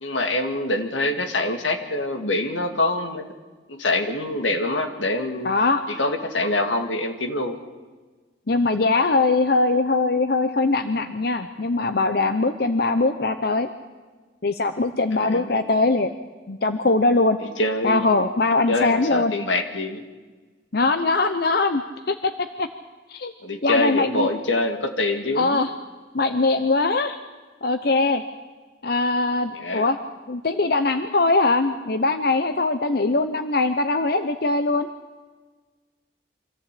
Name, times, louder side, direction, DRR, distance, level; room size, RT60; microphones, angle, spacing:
voice 1, 0.0-3.2 3.7-5.5 5.9-7.6 15.2-15.6 17.6-18.1 18.7-20.0 23.4-25.6 29.5-29.9, left 2 dB, 85° left, 6 dB, 2.2 m, -25 dB
voice 2, 5.4-5.8 8.5-13.7 14.4-16.1 16.5-17.4 17.8-19.3 20.7-22.7 23.1-23.3 23.6-24.3 25.4-25.7 26.1-27.2 27.6-28.2 28.8-30.0 30.3-34.9, left 3 dB, 55° left, 9 dB, 0.8 m, -21 dB
25.0 x 14.5 x 8.5 m, 1.4 s
head